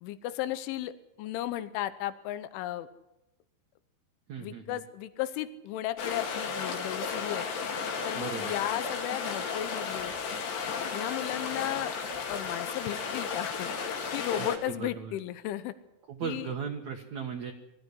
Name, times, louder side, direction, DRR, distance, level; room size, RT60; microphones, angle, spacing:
voice 1, 0.0-2.9 4.4-7.5 8.0-10.1 10.9-11.9 12.3-13.7 14.1-15.7 16.2-16.5, left 13 dB, 90° left, 13 dB, 3.4 m, -35 dB
voice 2, 4.3-4.8 8.1-8.6 14.4-15.2 16.1-17.5, right 6 dB, 70° right, 2 dB, 1.7 m, -37 dB
sound 1, 6.0-14.6, left 5 dB, 65° left, 4.5 m, -34 dB
22.0 x 14.5 x 9.8 m, 0.93 s
omnidirectional pair, 5.4 m